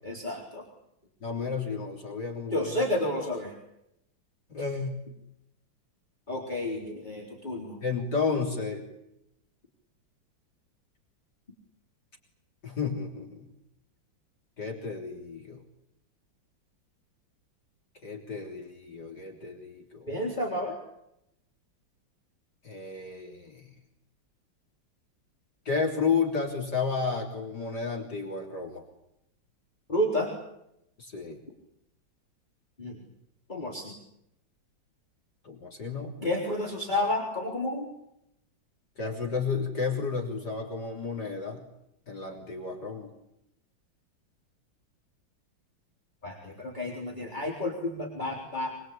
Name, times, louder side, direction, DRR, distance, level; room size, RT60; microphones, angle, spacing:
voice 1, 0.0-0.6 2.5-3.5 6.3-7.8 20.1-20.8 29.9-30.3 32.8-33.0 33.5-33.9 36.2-37.9 46.2-48.7, left 1 dB, 25° left, -1 dB, 4.0 m, -31 dB
voice 2, 1.2-2.9 4.5-5.1 7.8-8.8 12.6-13.4 14.6-15.6 18.0-20.1 22.6-23.7 25.7-28.8 31.0-31.4 35.4-36.1 39.0-41.6 42.1-43.1, left 5 dB, 55° left, 1 dB, 4.0 m, -32 dB
26.0 x 22.0 x 8.6 m, 0.82 s
omnidirectional pair, 2.1 m